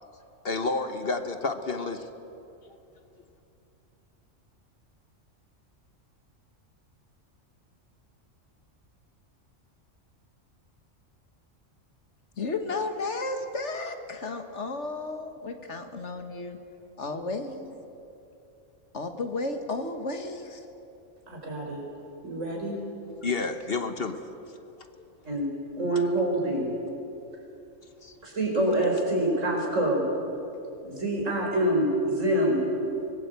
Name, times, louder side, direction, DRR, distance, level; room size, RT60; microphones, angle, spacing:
voice 1, 0.4-2.1 23.2-24.2 28.0-28.1, left 3 dB, 50° left, 8 dB, 1.3 m, -30 dB
voice 2, 12.4-16.6 17.0-17.7 18.9-20.6, left 3 dB, 65° left, 7 dB, 1.9 m, -33 dB
voice 3, 21.3-21.8 22.2-22.8 25.3-25.5 25.8-26.7 28.2-30.1 30.8-32.6, right 1 dB, 80° right, -1 dB, 5.3 m, -26 dB
24.0 x 20.0 x 8.2 m, 2.8 s
omnidirectional pair, 1.3 m